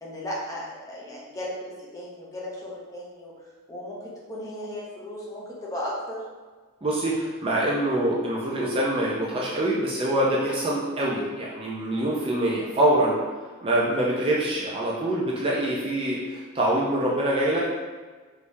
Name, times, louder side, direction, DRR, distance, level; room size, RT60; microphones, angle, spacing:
voice 1, 0.0-3.3 3.7-6.2, left 1 dB, 15° left, -5 dB, 0.7 m, -35 dB
voice 2, 6.8-13.2 13.6-17.6, right 1 dB, 25° right, -4 dB, 0.4 m, -25 dB
3.4 x 3.1 x 2.7 m, 1.4 s
head